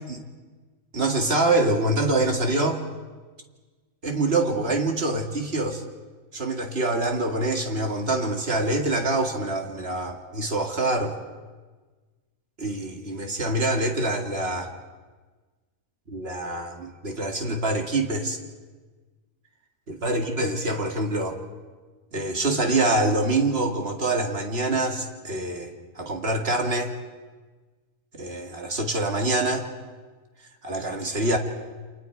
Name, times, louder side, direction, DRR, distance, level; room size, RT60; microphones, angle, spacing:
voice 1, 0.9-2.8 4.0-5.8 6.3-11.2 12.6-14.7 16.1-18.4 19.9-21.4 22.1-26.9 28.1-29.7 30.6-31.4, right 2 dB, 45° right, 3 dB, 2.4 m, -25 dB
29.0 x 27.0 x 4.7 m, 1.3 s
omnidirectional pair, 1.4 m